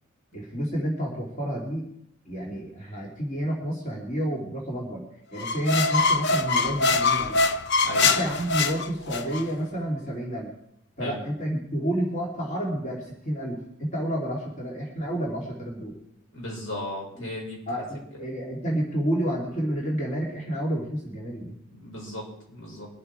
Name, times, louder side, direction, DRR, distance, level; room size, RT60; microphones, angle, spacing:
voice 1, 0.3-1.9 2.3-5.0 5.3-7.4 8.0-10.5 11.0-15.9 17.2-17.3 17.7-21.5, right 1 dB, 40° left, -3 dB, 3.1 m, -30 dB
sound 1, 5.4-9.4, left 3 dB, 55° left, 0.7 m, -23 dB
voice 2, 16.3-17.6 21.7-22.9, left 1 dB, 75° left, -2 dB, 5.1 m, -36 dB
23.0 x 8.4 x 4.6 m, 0.75 s
head